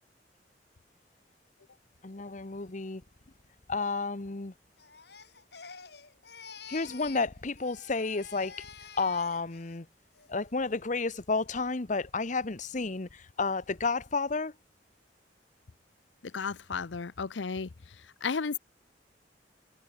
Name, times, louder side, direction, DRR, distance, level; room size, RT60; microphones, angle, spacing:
voice 1, 2.0-3.0 3.7-4.5 6.7-9.9 10.3-14.5, left 4 dB, 45° left, 1.0 m, -31 dB
Crying sobbing, 4.8-7.3 7.6-9.8 10.1-10.5, left 6 dB, 65° left, 7.4 m, -49 dB
voice 2, 16.2-18.6, left 5 dB, 85° left, 0.7 m, -34 dB
head